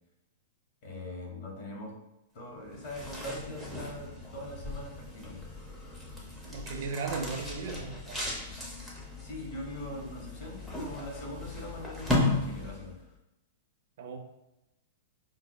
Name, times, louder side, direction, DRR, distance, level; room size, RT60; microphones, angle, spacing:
voice 1, 0.8-1.9 2.3-5.5 9.2-13.0, left 1 dB, 45° left, -1 dB, 1.1 m, -42 dB
sound 1, 2.7-13.0, left 2 dB, 5° left, 0.6 m, -36 dB
voice 2, 6.4-8.3 14.0-14.2, right 4 dB, 65° right, 4 dB, 0.5 m, -36 dB
5.4 x 2.0 x 2.2 m, 0.93 s
hypercardioid pair, 150°, 0 cm